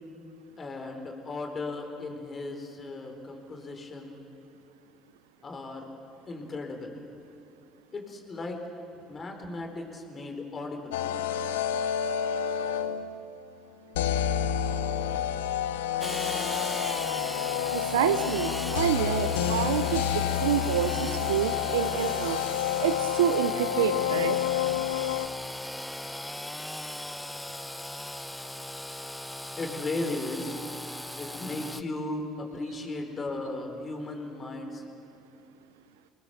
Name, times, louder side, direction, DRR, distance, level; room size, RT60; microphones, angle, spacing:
voice 1, 0.6-4.2 5.4-5.9 6.3-7.0 7.9-8.6 9.1-11.0 29.5-30.6 31.2-34.8, left 2 dB, 35° left, 3 dB, 4.5 m, -36 dB
sound 1, 10.9-13.2 14.0-25.3, left 9 dB, 85° left, 0.7 m, -29 dB
Engine / Sawing, 16.0-31.8, left 1 dB, 5° left, 0.8 m, -37 dB
voice 2, 17.7-22.4 22.8-24.4, right 10 dB, 90° right, 10 dB, 0.6 m, -28 dB
26.0 x 20.0 x 6.9 m, 2.8 s
hypercardioid pair, 65°, 0 cm